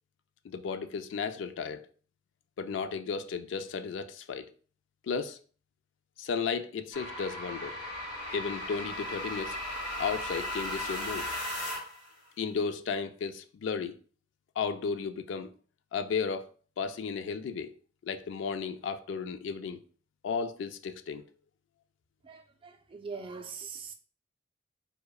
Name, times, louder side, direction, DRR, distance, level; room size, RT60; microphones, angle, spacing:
voice 1, 0.4-1.9 2.6-4.5 5.0-5.4 6.2-7.8 8.3-9.6 10.0-11.3 12.4-14.0 14.6-15.5 15.9-16.5 16.8-17.8 18.1-19.8 20.2-21.2, left 5 dB, 80° left, 0.3 m, -34 dB
sound 1, 6.9-12.1, left 1 dB, 30° left, 1.6 m, -36 dB
voice 2, 22.2-23.9, right 5 dB, 30° right, 0.3 m, -42 dB
4.7 x 2.1 x 2.3 m
head